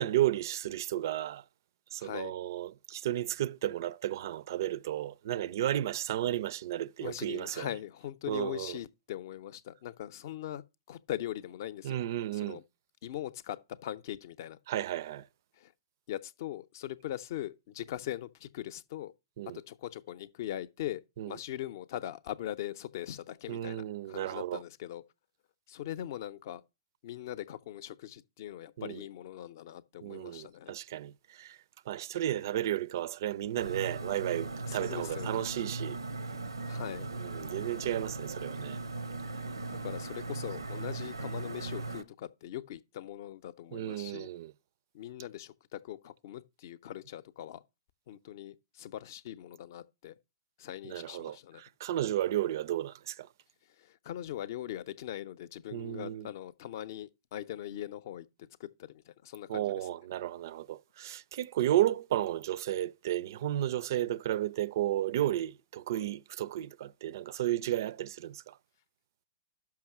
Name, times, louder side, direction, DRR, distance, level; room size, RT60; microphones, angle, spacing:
voice 1, 0.0-1.4 1.9-7.7 8.3-8.8 11.8-12.6 14.7-15.3 19.4-19.6 21.2-21.3 23.5-24.6 28.8-29.0 30.0-31.6 31.9-36.0 37.2-38.8 43.7-44.5 50.8-53.3 55.7-56.3 59.5-68.6, right 13 dB, 55° right, 0.4 m, -33 dB
voice 2, 2.0-2.3 7.0-12.0 12.3-12.6 13.0-14.6 15.6-15.7 16.1-19.1 19.7-25.0 25.7-26.6 27.0-30.7 34.7-35.5 36.6-37.1 39.7-44.3 44.9-47.6 48.1-50.2 50.6-51.6 53.8-59.9, left 12 dB, 50° left, 0.6 m, -41 dB
sound 1, 33.5-42.0, right 3 dB, 90° right, 0.7 m, -38 dB
6.0 x 5.8 x 5.9 m
figure-of-eight pair, 115°, 2 cm